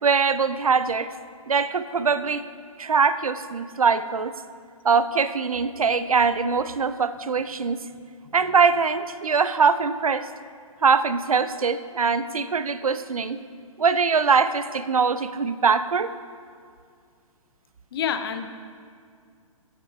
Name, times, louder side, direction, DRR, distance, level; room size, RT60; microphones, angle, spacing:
voice 1, 0.0-1.1 1.5-2.4 2.8-4.4 4.8-7.8 8.3-10.3 10.8-13.4 13.8-16.1, right 5 dB, 80° right, 13 dB, 0.4 m, -22 dB
voice 2, 17.9-18.5, left 8 dB, 45° left, 9 dB, 0.5 m, -28 dB
7.9 x 6.3 x 4.3 m, 2.2 s
figure-of-eight pair, 125°, 18 cm